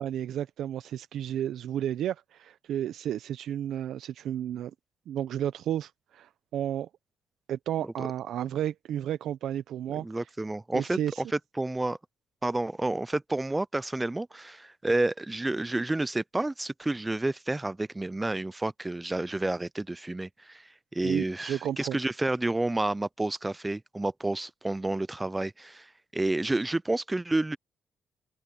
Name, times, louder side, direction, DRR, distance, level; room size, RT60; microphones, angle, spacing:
voice 1, 0.0-4.7 5.1-6.9 7.5-10.1 10.7-11.2 21.0-22.0, right 10 dB, 75° right, 0.6 m, -32 dB
voice 2, 9.9-12.0 12.4-27.6, right 2 dB, 15° right, 0.4 m, -30 dB
cardioid pair, 90°, 0 cm